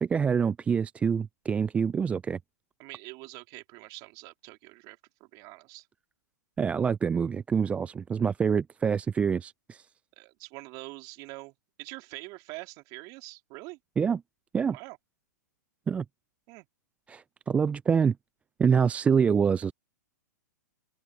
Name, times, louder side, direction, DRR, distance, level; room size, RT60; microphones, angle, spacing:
voice 1, 0.0-2.4 6.6-9.9 14.0-14.2 14.5-14.8 15.9-16.0 17.1-18.2 18.6-19.7, right 6 dB, 10° right, 0.3 m, -26 dB
voice 2, 2.8-5.9 10.2-13.8 14.7-15.0 16.5-16.7, right 26 dB, 40° right, 3.8 m, -45 dB
open air
hypercardioid pair, 115°, 10 cm